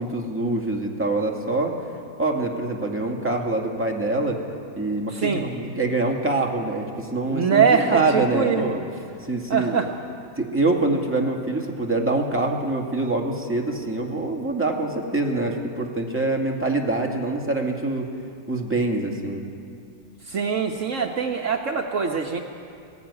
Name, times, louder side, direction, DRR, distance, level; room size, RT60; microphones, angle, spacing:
voice 1, 0.0-1.8 2.2-4.4 4.8-8.8 9.2-9.8 10.4-18.1 18.5-19.4, right 2 dB, 10° right, 0 dB, 2.2 m, -25 dB
voice 2, 5.1-5.5 7.3-8.7 9.5-9.9 20.3-22.4, right 6 dB, 60° right, 2 dB, 1.4 m, -23 dB
20.5 x 15.5 x 9.8 m, 2.4 s
omnidirectional pair, 1.6 m